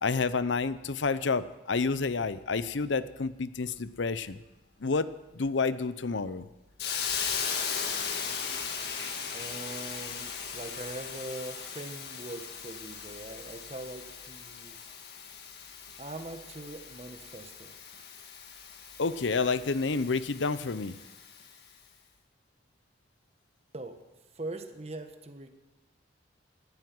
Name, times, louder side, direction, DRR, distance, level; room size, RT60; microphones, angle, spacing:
voice 1, 0.0-4.4 4.8-6.5 19.0-21.0, left 4 dB, 75° left, 15 dB, 0.7 m, -29 dB
Hiss, 6.8-21.6, left 6 dB, 55° left, 1.8 m, -38 dB
voice 2, 9.3-14.8 16.0-17.8 23.7-24.0 24.3-25.5, right 2 dB, 35° right, 7 dB, 1.3 m, -42 dB
17.5 x 12.5 x 6.1 m, 1.1 s
head